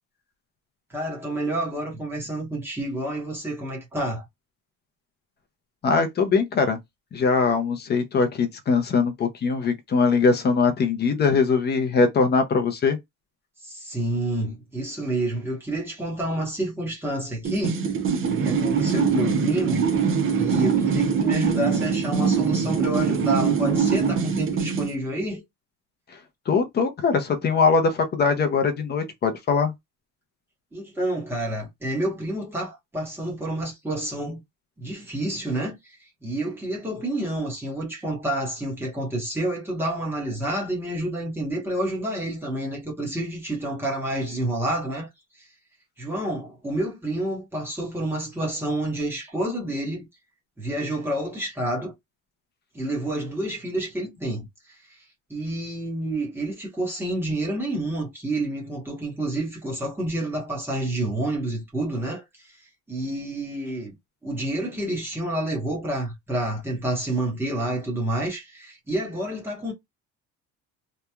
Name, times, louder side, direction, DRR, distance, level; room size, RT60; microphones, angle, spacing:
voice 1, 0.9-4.2 13.6-17.8 18.4-19.8 20.4-25.4 30.7-34.4 34.8-45.1 45.4-45.5 46.0-50.1 50.6-51.9 52.7-55.0 55.3-63.9 64.2-69.7, right 1 dB, 5° right, 1.0 m, -29 dB
voice 2, 5.8-6.8 7.1-13.0 26.5-29.7, left 4 dB, 30° left, 0.5 m, -21 dB
sound 1, 17.4-24.9, right 6 dB, 40° right, 0.5 m, -23 dB
2.9 x 2.2 x 2.2 m
cardioid pair, 180°, 34 cm